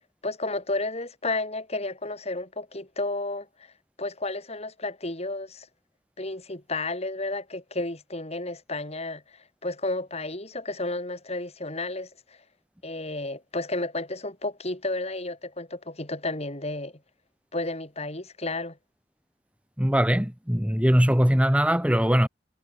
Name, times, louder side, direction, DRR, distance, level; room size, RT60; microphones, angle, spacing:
voice 1, 0.2-3.5 4.0-5.7 6.2-12.1 12.8-16.9 17.5-18.8, left 2 dB, 40° left, 7.8 m, -32 dB
voice 2, 19.8-22.3, equal, 5° right, 1.8 m, -21 dB
head